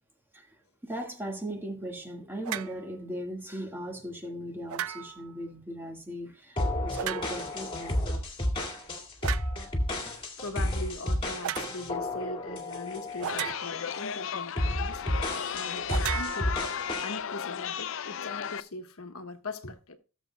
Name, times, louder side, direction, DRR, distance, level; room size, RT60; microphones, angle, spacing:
voice 1, 0.3-8.0, equal, 10° right, 1.6 m, -38 dB
sound 1, 2.4-2.8 4.7-5.3 6.9-7.6 9.2-9.6 11.4-11.7 13.2-14.0 15.9-17.0, right 10 dB, 80° right, 0.4 m, -35 dB
sound 2, 6.6-13.5 13.9-14.2 14.6-17.1, left 1 dB, 25° left, 2.2 m, -32 dB
voice 2, 10.4-16.6 17.0-20.0, left 2 dB, 80° left, 1.3 m, -41 dB
Chatter, 13.3-18.6, left 8 dB, 60° left, 0.5 m, -34 dB
17.0 x 7.5 x 2.2 m
head